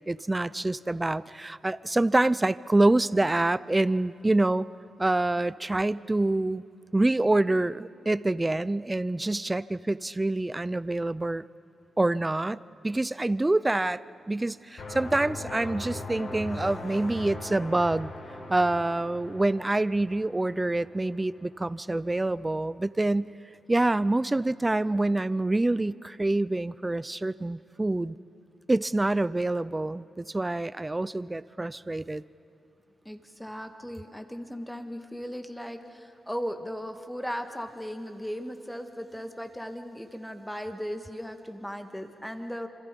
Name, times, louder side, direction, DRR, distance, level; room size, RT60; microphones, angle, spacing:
voice 1, 0.0-4.7 5.0-6.6 6.9-11.5 12.0-14.0 14.3-18.1 18.5-23.3 23.7-28.2 28.7-32.2, right 2 dB, 20° right, 17 dB, 0.5 m, -26 dB
sound 1, 14.8-21.5, left 2 dB, 80° left, 4.5 m, -40 dB
voice 2, 33.1-42.7, equal, 5° left, 6 dB, 1.8 m, -37 dB
27.0 x 25.5 x 5.3 m, 2.9 s
cardioid pair, 85°, 0 cm